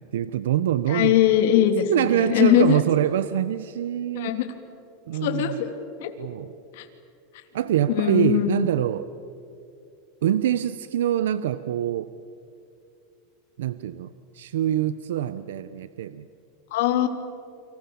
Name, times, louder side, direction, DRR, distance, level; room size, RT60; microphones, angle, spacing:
voice 1, 0.0-1.1 1.9-4.4 5.1-5.6 6.2-6.5 7.5-9.1 10.2-12.1 13.6-16.3, right 11 dB, 85° right, 14 dB, 0.8 m, -25 dB
voice 2, 0.9-2.8 4.1-4.5 5.2-5.7 6.0-6.1 6.7-6.8 7.9-8.6 16.7-17.1, left 11 dB, 65° left, 6 dB, 2.9 m, -21 dB
29.5 x 25.0 x 7.1 m, 2.5 s
supercardioid pair, 150°, 0 cm